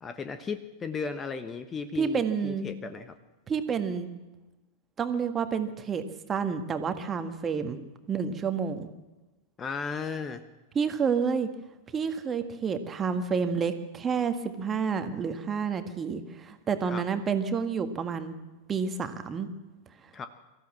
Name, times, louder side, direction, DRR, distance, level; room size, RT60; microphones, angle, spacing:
voice 1, 0.0-3.1 7.6-7.9 9.6-10.4 16.9-17.0 20.1-20.3, left 5 dB, 20° left, 11 dB, 1.2 m, -35 dB
voice 2, 2.0-2.7 3.5-4.1 5.0-6.0 6.3-7.8 8.1-8.9 10.8-11.5 11.9-18.4 18.7-19.5, right 6 dB, 20° right, 8 dB, 1.8 m, -29 dB
24.0 x 14.5 x 7.5 m, 1.1 s
figure-of-eight pair, 90°, 0 cm